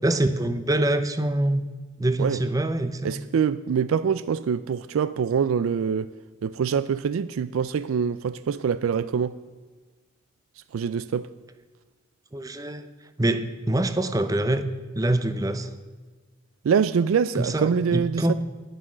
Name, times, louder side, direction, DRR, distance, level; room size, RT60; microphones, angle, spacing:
voice 1, 0.0-1.7 2.0-3.2 12.3-12.9 13.2-14.7 14.9-15.7 17.3-18.3, right 1 dB, 15° right, 0.6 m, -25 dB
voice 2, 3.0-6.1 6.4-9.4 10.7-11.3 16.6-18.3, right 6 dB, 90° right, 0.4 m, -24 dB
10.5 x 9.9 x 6.1 m
head